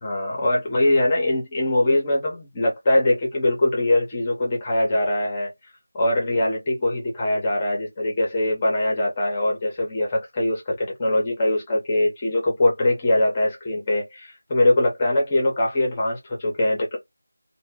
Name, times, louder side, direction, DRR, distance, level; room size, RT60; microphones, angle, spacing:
voice 1, 0.0-5.5 5.9-17.0, left 1 dB, 20° left, 0.6 m, -22 dB
2.1 x 2.0 x 3.4 m
figure-of-eight pair, 170°, 0 cm